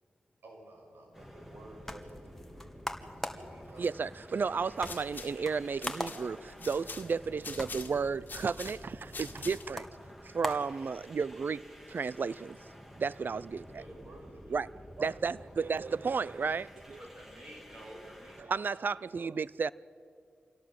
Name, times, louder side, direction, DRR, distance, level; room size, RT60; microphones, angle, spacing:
voice 1, 0.4-2.7 3.2-4.1 4.5-5.0 13.8-16.0, right 1 dB, 85° right, 5.9 m, -53 dB
sound 1, 1.1-18.5, equal, 10° right, 3.2 m, -52 dB
sound 2, 1.5-11.4, left 1 dB, 10° left, 2.0 m, -44 dB
voice 2, 3.8-9.8 10.3-11.6 11.9-12.6 13.0-13.6 14.5-14.7 15.0-17.0 18.5-19.7, right 5 dB, 65° right, 0.5 m, -33 dB
sound 3, 4.6-9.9, left 4 dB, 60° left, 1.9 m, -46 dB
voice 3, 17.0-19.0, equal, 35° right, 6.6 m, -51 dB
26.5 x 17.5 x 7.7 m
cardioid pair, 55°, 4 cm